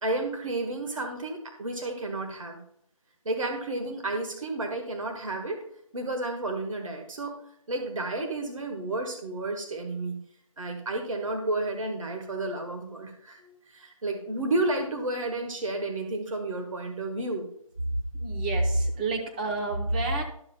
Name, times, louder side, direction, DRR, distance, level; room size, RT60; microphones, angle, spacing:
voice 1, 0.0-2.6 3.2-5.6 5.9-7.3 7.7-10.2 10.6-17.5, right 2 dB, 65° right, 4 dB, 1.5 m, -31 dB
voice 2, 18.1-20.2, right 2 dB, 15° right, 2 dB, 0.8 m, -27 dB
12.5 x 7.1 x 2.2 m, 0.71 s
figure-of-eight pair, 160°, 18 cm